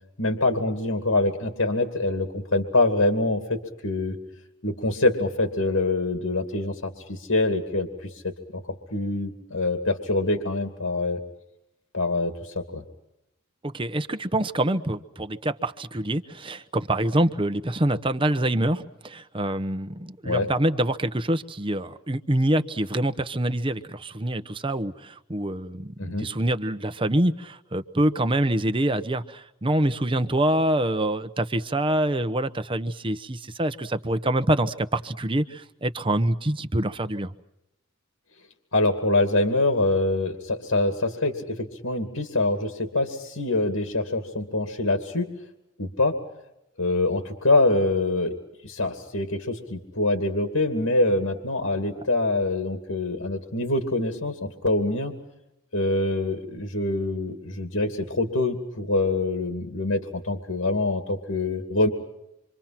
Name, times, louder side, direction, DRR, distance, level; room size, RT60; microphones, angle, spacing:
voice 1, 0.2-4.2 4.6-8.6 8.9-11.2 11.9-12.8 20.2-20.5 26.0-26.3 38.7-45.3 45.8-46.1 46.8-48.3 48.6-55.1 55.7-61.9, left 2 dB, 75° left, 6 dB, 2.5 m, -25 dB
voice 2, 13.6-37.3, right 1 dB, 25° right, 11 dB, 0.9 m, -25 dB
27.0 x 25.0 x 5.9 m, 0.86 s
head